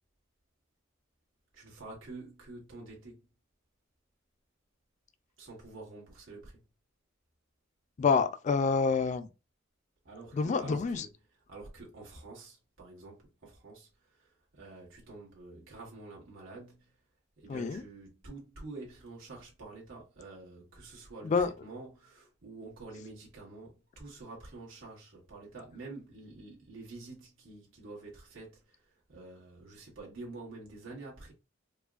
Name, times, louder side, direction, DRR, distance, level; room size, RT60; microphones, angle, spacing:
voice 1, 1.5-3.3 5.4-6.6 10.0-17.0 17.4-31.3, right 3 dB, 90° right, 1.6 m, -48 dB
voice 2, 8.0-9.3 10.4-11.0 17.5-17.8 21.2-21.5, left 5 dB, 40° left, 0.3 m, -27 dB
4.6 x 2.2 x 2.4 m
head